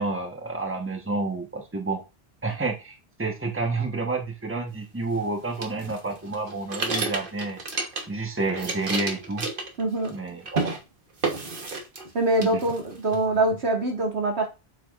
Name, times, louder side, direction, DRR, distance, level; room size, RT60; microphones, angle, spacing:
voice 1, 0.0-2.0 2.4-7.6 8.1-9.5 10.1-10.8 12.4-12.6, right 3 dB, 10° right, 1.2 m, -29 dB
sound 1, 5.6-8.2 8.5-10.2 10.5-10.8 11.2-12.1 12.4-13.2, right 3 dB, 55° right, 1.4 m, -30 dB
voice 2, 9.8-10.2 12.1-14.5, right 2 dB, 90° right, 2.1 m, -24 dB
7.9 x 5.9 x 2.5 m
omnidirectional pair, 1.1 m